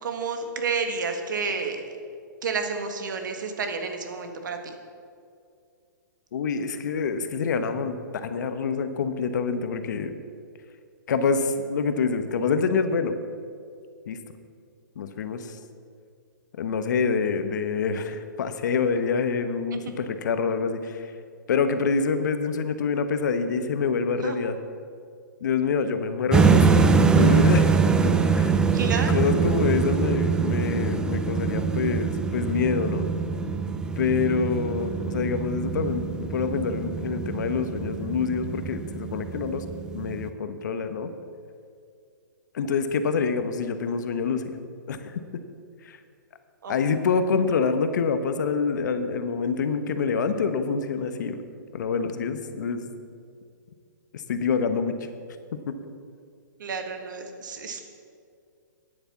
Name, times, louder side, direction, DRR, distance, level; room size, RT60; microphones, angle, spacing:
voice 1, 0.0-1.8 2.4-4.6 19.7-19.8 24.2-24.3 28.7-29.3 46.6-46.8 56.6-57.8, right 5 dB, 70° right, 5 dB, 1.7 m, -30 dB
voice 2, 6.3-10.1 11.1-13.1 14.1-14.2 15.0-15.6 16.6-21.1 21.5-24.6 25.4-27.7 28.0-33.1 34.0-39.6 39.9-41.1 42.5-44.6 44.9-45.2 45.8-46.0 46.7-51.4 51.7-53.0 54.1-54.9 55.7-55.8, left 5 dB, 65° left, 9 dB, 1.1 m, -26 dB
sound 1, 26.3-40.3, right 5 dB, 5° right, 0.5 m, -23 dB
9.8 x 8.6 x 7.1 m, 2.3 s
hypercardioid pair, 145°, 11 cm